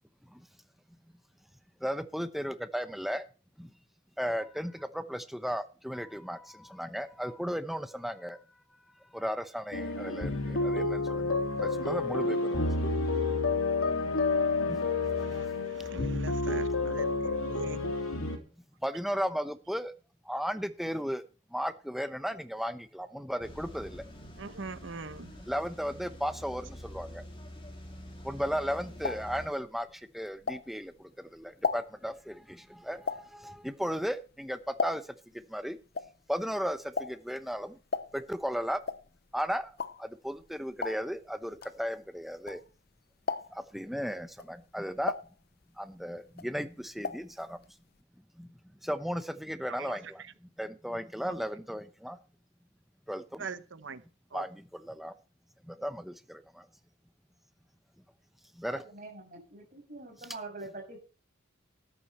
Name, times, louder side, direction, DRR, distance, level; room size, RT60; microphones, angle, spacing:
voice 1, 1.8-3.2 3.6-3.7 4.2-8.4 9.1-11.3 11.6-12.7 14.7-14.8 18.8-19.9 20.3-21.2 21.5-24.0 25.5-27.2 28.2-29.9 30.1-30.9 31.3-35.0 35.5-35.8 36.3-37.8 38.1-38.8 39.3-39.7 40.0-42.6 43.5-45.1 45.8-47.6 48.4-48.5 48.8-50.2 50.6-52.2 53.1-53.5 54.3-55.1 55.7-56.6 58.6-58.8, equal, ahead, 0.8 m, -35 dB
sound 1, 9.7-18.4, left 3 dB, 80° left, 3.0 m, -29 dB
voice 2, 15.7-17.8 24.4-25.3 53.4-53.6 53.8-54.0 54.3-54.4, right 4 dB, 60° right, 0.8 m, -41 dB
sound 2, 23.4-29.5, equal, 25° left, 3.0 m, -46 dB
sound 3, 28.5-31.0 31.4-35.3 35.6-42.9 43.2-43.8 44.3-46.0 46.3-47.4 47.6-47.7 48.0-48.1, left 4 dB, 45° left, 0.7 m, -37 dB
voice 3, 58.7-61.0, right 2 dB, 40° right, 6.1 m, -44 dB
14.0 x 10.5 x 4.3 m
head